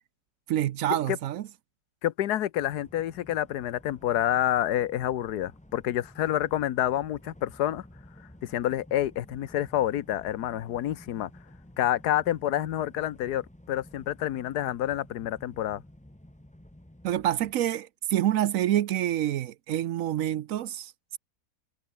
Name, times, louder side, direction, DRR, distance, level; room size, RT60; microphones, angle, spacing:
voice 1, 0.5-1.5 17.0-21.2, right 12 dB, 65° right, 0.9 m, -27 dB
voice 2, 2.0-7.8 8.4-11.3 11.8-15.8, left 12 dB, 80° left, 1.4 m, -28 dB
sound 1, 2.6-17.5, left 1 dB, 5° left, 1.4 m, -52 dB
omnidirectional pair, 1.7 m